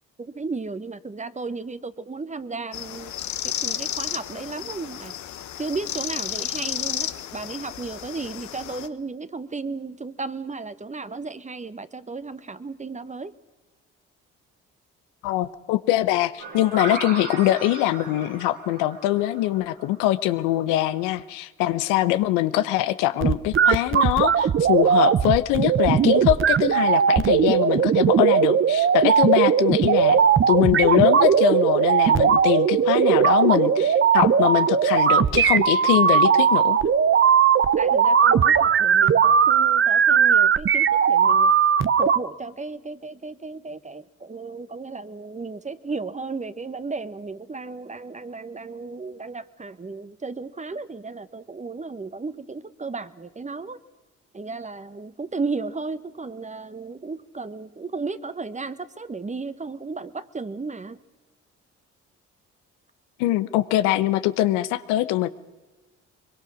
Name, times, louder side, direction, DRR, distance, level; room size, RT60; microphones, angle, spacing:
voice 1, 0.3-3.1 3.6-5.1 5.6-13.3 37.8-41.5 42.0-53.8 54.3-61.0, right 4 dB, 25° right, 14 dB, 1.3 m, -34 dB
sound 1, 2.7-8.9, left 11 dB, 70° left, 1.3 m, -32 dB
voice 2, 15.2-30.2 30.5-36.8 63.2-65.3, left 14 dB, 85° left, 13 dB, 0.9 m, -23 dB
sound 2, 16.4-20.1, right 3 dB, 80° right, 5.3 m, -35 dB
sound 3, 23.2-42.2, right 7 dB, 40° right, 0.9 m, -18 dB
22.5 x 22.5 x 6.3 m, 1.2 s
supercardioid pair, 60°, 30 cm